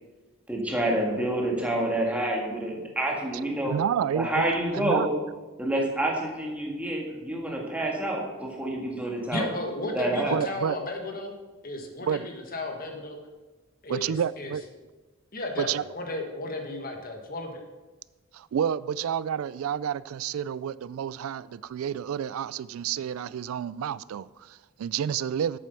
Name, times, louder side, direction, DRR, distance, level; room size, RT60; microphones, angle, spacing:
voice 1, 0.5-3.8 4.1-5.1 5.6-9.5 9.9-10.4, right 1 dB, 5° right, -1 dB, 1.8 m, -28 dB
voice 2, 3.7-4.4 4.7-5.1 10.3-10.8 12.1-12.3 13.9-14.6 15.6-15.8 18.3-25.6, right 8 dB, 90° right, 19 dB, 0.3 m, -29 dB
voice 3, 9.3-11.3 11.6-13.2 13.8-14.5 15.3-17.6, left 2 dB, 45° left, 3 dB, 1.5 m, -34 dB
8.3 x 7.5 x 6.9 m, 1.2 s
head